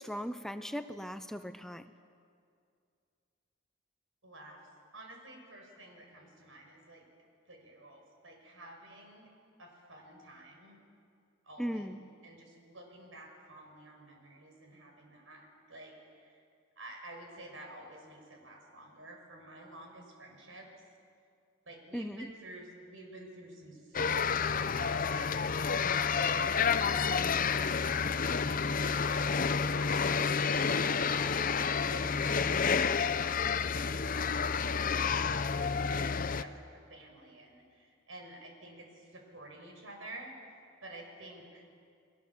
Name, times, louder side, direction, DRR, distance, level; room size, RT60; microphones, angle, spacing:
voice 1, 0.0-1.8 11.6-12.0 21.9-22.2, equal, ahead, 9 dB, 0.6 m, -38 dB
voice 2, 4.2-4.6 4.9-7.0 7.5-9.3 9.6-10.8 11.4-11.9 12.2-16.4 16.8-20.7 21.7-31.5 31.9-34.6 35.0-40.3 40.8-41.6, right 1 dB, 85° right, 2 dB, 6.2 m, -50 dB
sound 1, 23.9-36.4, left 5 dB, 45° left, 0.7 m, -30 dB
30.0 x 21.0 x 7.3 m, 2.3 s
head